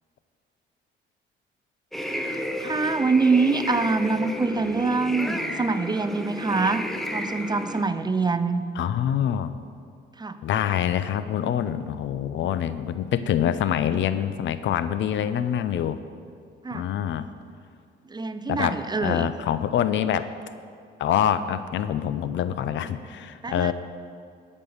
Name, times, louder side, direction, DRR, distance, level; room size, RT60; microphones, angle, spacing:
sound 1, 1.9-7.8, equal, ahead, 0.9 m, -32 dB
voice 1, 2.1-6.9 7.1-8.6 10.2-10.4 16.6-16.8 18.1-19.3 23.4-23.7, right 4 dB, 20° right, 11 dB, 0.6 m, -25 dB
voice 2, 8.7-9.6 10.4-16.0 16.7-17.3 18.5-20.3 21.0-23.7, left 9 dB, 70° left, 13 dB, 0.6 m, -25 dB
12.5 x 5.5 x 8.5 m, 2.3 s
cardioid pair, 90°, 20 cm